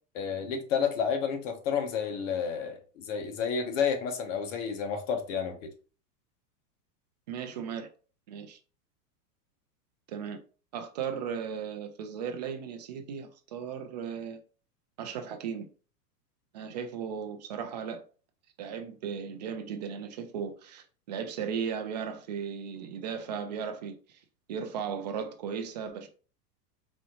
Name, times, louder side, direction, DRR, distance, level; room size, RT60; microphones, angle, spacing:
voice 1, 0.1-5.7, left 6 dB, 50° left, 1.1 m, -30 dB
voice 2, 7.3-7.9 8.3-8.6 10.1-10.4 10.7-14.4 15.0-15.7 16.5-18.0 18.6-24.2 24.5-26.1, right 7 dB, 30° right, 0.3 m, -36 dB
4.2 x 3.5 x 3.0 m
supercardioid pair, 155°, 48 cm